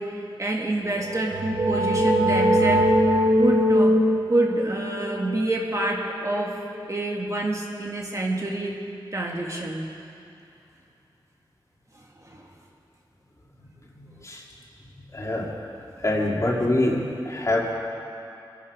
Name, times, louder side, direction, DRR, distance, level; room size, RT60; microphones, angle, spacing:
voice 1, 0.0-2.9 3.4-4.0 4.3-6.6 6.9-8.8 9.1-9.9 12.2-12.5, right 2 dB, 35° right, -1 dB, 1.8 m, -27 dB
sound 1, 0.9-6.5, equal, 70° right, 2.3 m, -22 dB
voice 2, 13.9-14.4 15.1-15.6 16.0-17.8, left 1 dB, 35° left, -2 dB, 2.4 m, -25 dB
22.5 x 11.0 x 5.0 m, 2.7 s
wide cardioid pair, 85°, 9 cm